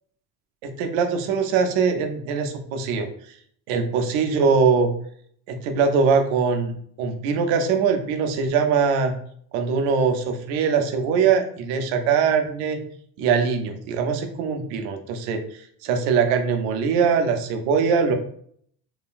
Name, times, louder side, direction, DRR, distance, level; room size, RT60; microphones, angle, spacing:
voice 1, 0.6-3.1 3.7-4.9 5.5-9.1 9.5-12.8 13.2-18.1, right 5 dB, 70° right, 6 dB, 0.8 m, -22 dB
3.8 x 2.2 x 2.5 m, 0.62 s
supercardioid pair, 75°, 49 cm